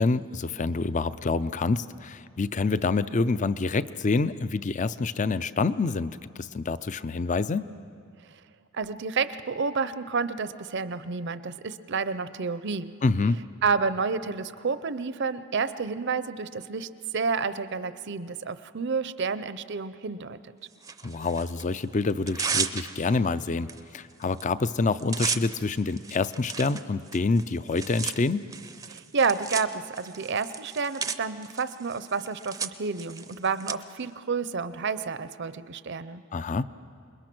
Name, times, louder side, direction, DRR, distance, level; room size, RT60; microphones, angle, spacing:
voice 1, 0.0-7.7 13.0-13.4 21.0-28.5 36.3-36.7, left 3 dB, 35° left, 15 dB, 0.5 m, -27 dB
voice 2, 8.7-12.9 13.6-20.4 28.9-36.2, right 5 dB, 55° right, 13 dB, 0.6 m, -30 dB
Tearing, 20.8-21.6 22.1-23.2 23.7-23.8 24.1-24.4 24.7-33.7, right 5 dB, 15° right, 0.6 m, -34 dB
27.5 x 21.5 x 6.1 m, 2.3 s
head